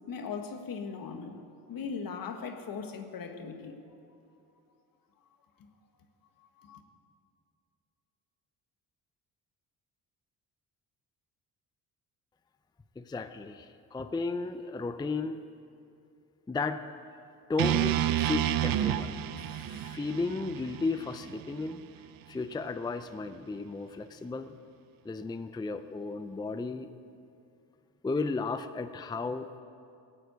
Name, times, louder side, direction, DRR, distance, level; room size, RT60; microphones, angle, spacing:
voice 1, 0.1-1.4 1.7-3.8 6.6-6.8, left 5 dB, 60° left, 6 dB, 1.5 m, -39 dB
voice 2, 13.0-15.4 16.5-16.8 17.5-21.9 22.3-24.5 25.0-26.9 28.0-29.6, left 3 dB, 10° left, 9 dB, 0.5 m, -34 dB
sound 1, 17.6-21.7, right 12 dB, 65° right, 0.7 m, -30 dB
17.0 x 8.6 x 8.0 m, 2.5 s
cardioid pair, 100°, 38 cm